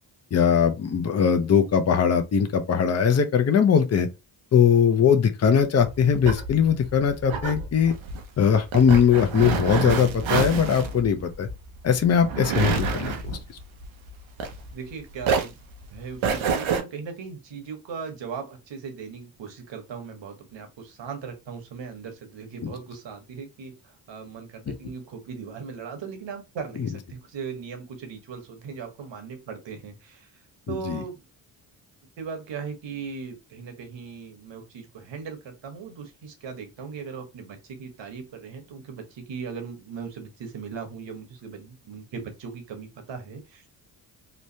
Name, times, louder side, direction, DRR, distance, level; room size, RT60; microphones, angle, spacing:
voice 1, 0.3-4.1 4.5-7.9 8.4-11.5 11.8-13.4 22.6-22.7 30.7-31.0, left 7 dB, 35° left, 0.6 m, -20 dB
sound 1, 5.8-14.9 15.2-16.8, right 5 dB, 90° right, 0.7 m, -28 dB
voice 2, 14.7-15.5 15.9-31.2 32.2-43.7, right 5 dB, 70° right, 1.1 m, -38 dB
3.1 x 2.1 x 2.7 m
cardioid pair, 55°, 46 cm